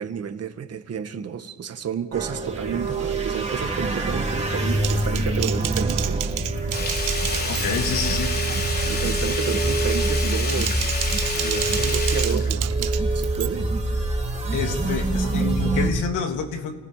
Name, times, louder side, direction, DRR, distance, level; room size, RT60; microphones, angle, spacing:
voice 1, 0.0-6.4 8.9-10.9 11.2-13.7, right 8 dB, 55° right, 2.1 m, -31 dB
sound 1, 2.1-15.9, right 2 dB, 25° right, 4.7 m, -25 dB
Typing, 4.8-8.0 8.3-8.7 9.1-9.4 10.2-13.5, right 13 dB, 85° right, 1.2 m, -32 dB
Sink (filling or washing), 6.7-13.2 13.6-13.7, left 2 dB, 30° left, 3.6 m, -30 dB
voice 2, 7.5-8.3 14.5-16.8, left 6 dB, 85° left, 3.2 m, -27 dB
30.0 x 29.5 x 5.2 m
cardioid pair, 90°, 30 cm